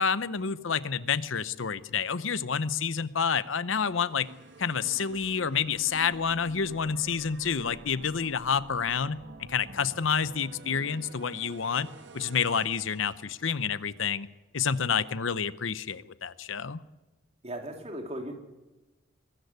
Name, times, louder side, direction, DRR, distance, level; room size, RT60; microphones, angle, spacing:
voice 1, 0.0-4.3 4.6-9.2 9.5-11.9 12.1-14.3 14.5-16.8, left 6 dB, 80° left, 16 dB, 0.8 m, -29 dB
sound 1, 3.7-13.9, right 3 dB, 65° right, 1.3 m, -49 dB
voice 2, 17.4-18.3, right 1 dB, 35° right, 3 dB, 3.5 m, -37 dB
23.0 x 13.5 x 9.5 m, 1.1 s
head